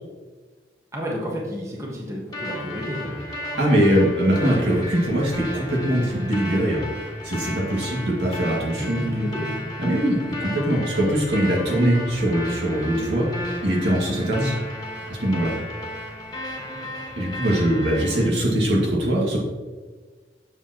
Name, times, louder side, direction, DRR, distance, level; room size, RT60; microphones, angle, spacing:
voice 1, 0.9-3.1 8.8-9.6 16.7-17.0, equal, 15° right, -3 dB, 1.2 m, -31 dB
sound 1, 2.3-18.3, left 1 dB, 25° left, 1.5 m, -34 dB
voice 2, 3.6-6.8 7.2-9.1 9.8-13.3 13.6-14.5 15.1-15.5 17.2-19.4, right 1 dB, 80° right, -4 dB, 2.0 m, -22 dB
7.3 x 7.0 x 3.0 m, 1.4 s
head